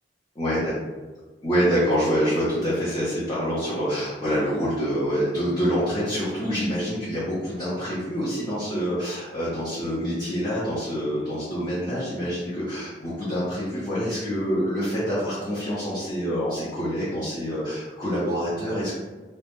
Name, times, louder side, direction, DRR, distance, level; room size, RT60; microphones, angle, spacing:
voice 1, 0.3-0.7 1.4-18.9, equal, 20° left, -11 dB, 0.6 m, -26 dB
2.1 x 2.1 x 2.9 m, 1.3 s
head